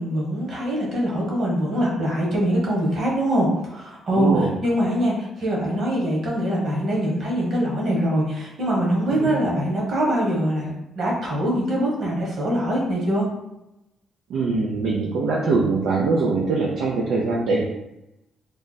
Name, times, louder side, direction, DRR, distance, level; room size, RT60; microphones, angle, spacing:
voice 1, 0.0-13.2, equal, 60° right, -3 dB, 1.4 m, -23 dB
voice 2, 4.1-4.6 9.1-9.3 14.3-17.6, right 3 dB, 75° right, -3 dB, 0.5 m, -22 dB
3.3 x 2.1 x 4.1 m, 0.91 s
cardioid pair, 90°, 0 cm